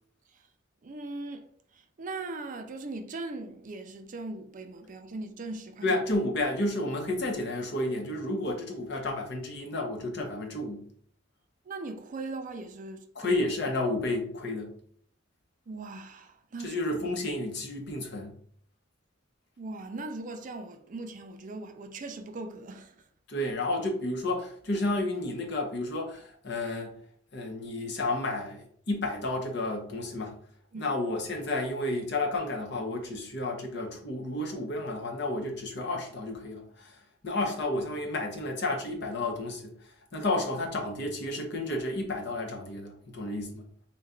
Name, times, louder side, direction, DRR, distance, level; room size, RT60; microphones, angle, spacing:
voice 1, 0.8-1.5 1.7-5.9 11.7-13.3 15.7-16.8 19.6-23.0 30.7-30.9, right 2 dB, 40° right, 0.4 m, -39 dB
voice 2, 5.8-10.8 13.1-14.7 16.6-18.3 23.3-26.9 27.3-30.3 30.7-39.7 40.1-43.7, left 2 dB, 60° left, 0.8 m, -31 dB
4.1 x 2.2 x 3.7 m
head